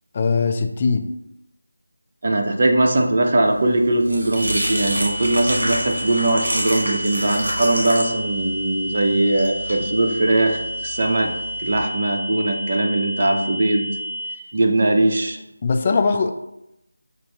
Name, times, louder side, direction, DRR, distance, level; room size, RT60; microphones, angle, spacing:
voice 1, 0.1-1.1 15.6-16.3, left 4 dB, 30° left, 6 dB, 0.3 m, -20 dB
voice 2, 2.2-11.3 11.6-13.9 14.5-15.4, right 2 dB, 45° right, 3 dB, 0.6 m, -20 dB
sound 1, 3.6-11.8, right 1 dB, 75° right, 1.5 m, -29 dB
sound 2, 4.4-14.4, equal, 5° right, 0.6 m, -30 dB
5.9 x 2.6 x 2.8 m, 0.86 s
figure-of-eight pair, 165°, 0 cm